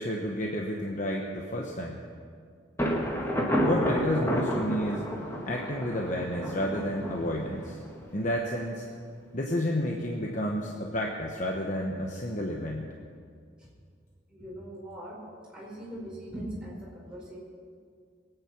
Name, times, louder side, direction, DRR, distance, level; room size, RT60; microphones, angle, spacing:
voice 1, 0.0-2.0 3.6-5.0 5.5-7.8 8.1-8.9 9.3-12.9, left 1 dB, 40° left, 0 dB, 1.1 m, -31 dB
Thunder, 2.8-8.4, equal, 15° left, 1.7 m, -30 dB
voice 2, 14.3-15.2 15.5-17.4, right 1 dB, 5° right, -6 dB, 5.1 m, -40 dB
21.5 x 9.2 x 6.0 m, 2.2 s
head